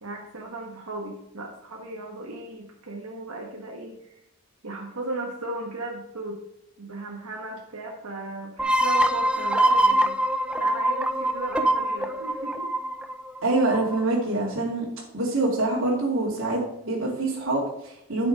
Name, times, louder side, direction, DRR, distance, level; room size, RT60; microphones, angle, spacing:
voice 1, 0.0-4.2 4.6-6.4 6.8-12.7, right 2 dB, 75° right, -1 dB, 1.5 m, -36 dB
sound 1, 8.6-14.0, right 1 dB, 5° right, 0.5 m, -24 dB
voice 2, 13.4-14.9 15.1-18.3, right 2 dB, 60° right, -5 dB, 2.6 m, -25 dB
9.6 x 6.1 x 5.3 m, 0.81 s
head